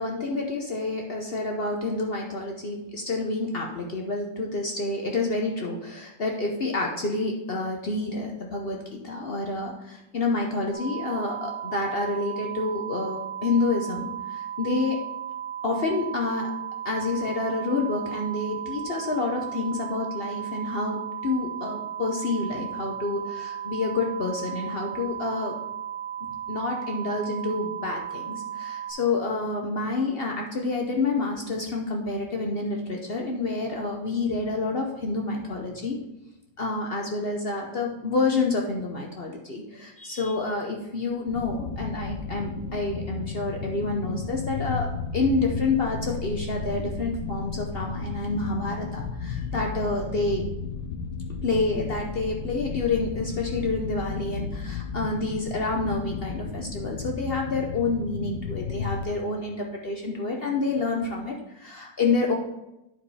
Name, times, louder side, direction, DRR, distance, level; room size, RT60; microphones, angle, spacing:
voice 1, 0.0-15.0 15.6-16.5 16.8-25.5 26.2-36.0 36.6-50.4 51.4-62.3, left 3 dB, 55° left, 1 dB, 0.6 m, -28 dB
sound 1, 10.7-28.9, right 9 dB, 30° left, 1.8 m, -35 dB
sound 2, 41.3-59.0, left 5 dB, 75° left, 1.4 m, -34 dB
10.5 x 4.6 x 4.1 m, 0.91 s
omnidirectional pair, 2.1 m